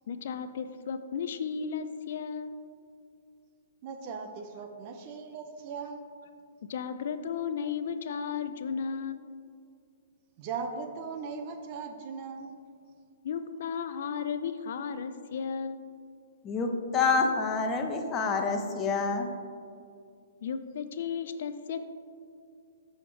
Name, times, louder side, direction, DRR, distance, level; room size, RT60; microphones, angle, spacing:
voice 1, 0.1-2.5 6.7-9.3 13.2-15.8 20.4-21.8, left 6 dB, 65° left, 11 dB, 0.4 m, -34 dB
voice 2, 3.8-6.0 10.4-12.6, right 5 dB, 40° right, 6 dB, 0.5 m, -38 dB
voice 3, 16.4-19.3, left 4 dB, 25° left, 4 dB, 0.7 m, -27 dB
6.8 x 6.2 x 3.2 m, 2.3 s
hypercardioid pair, 130°, 0 cm